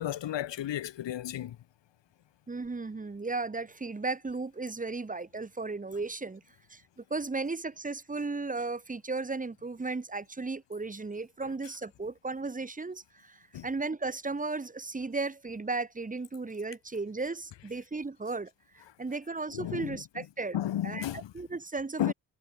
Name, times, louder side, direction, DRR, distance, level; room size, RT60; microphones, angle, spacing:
voice 1, 0.0-1.6 13.5-13.7 19.5-20.2 20.5-21.3 22.0-22.1, left 12 dB, 75° left, 2.4 m, -33 dB
voice 2, 2.5-6.4 6.7-20.6 20.8-22.1, right 3 dB, 20° right, 3.5 m, -35 dB
wide cardioid pair, 175°, 44 cm